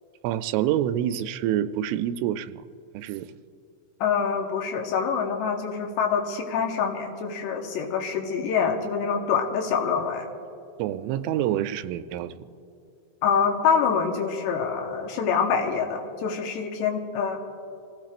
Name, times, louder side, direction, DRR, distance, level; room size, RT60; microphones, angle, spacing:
voice 1, 0.2-2.6 2.9-3.3 10.8-12.5, right 11 dB, 90° right, 11 dB, 3.1 m, -27 dB
voice 2, 4.0-10.3 13.2-17.4, left 6 dB, 70° left, 2 dB, 3.0 m, -25 dB
28.5 x 16.5 x 2.5 m, 2.7 s
omnidirectional pair, 5.5 m